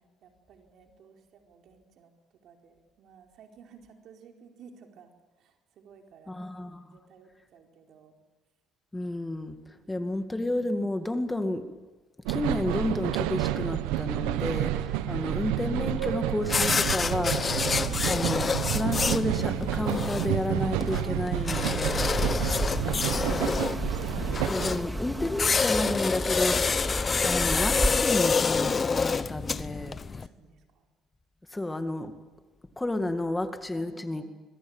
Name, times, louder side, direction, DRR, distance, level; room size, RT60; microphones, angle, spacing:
voice 1, 0.2-2.1 2.4-6.5 6.8-8.2 9.7-10.1 29.8-30.9 33.7-34.3, right 6 dB, 65° right, 3 dB, 4.5 m, -54 dB
voice 2, 6.3-6.9 8.9-11.7 12.3-17.5 18.1-22.1 23.3-23.6 24.4-26.7 27.2-30.0 31.5-32.1 32.8-34.2, left 1 dB, 15° left, 8 dB, 2.2 m, -31 dB
sound 1, 12.3-24.8, right 13 dB, 90° right, 1.2 m, -30 dB
sound 2, 16.4-30.3, left 5 dB, 30° left, 1.0 m, -28 dB
sound 3, 22.0-28.0, right 1 dB, 5° right, 2.1 m, -33 dB
26.0 x 22.0 x 9.0 m, 1.2 s
supercardioid pair, 85°, 0 cm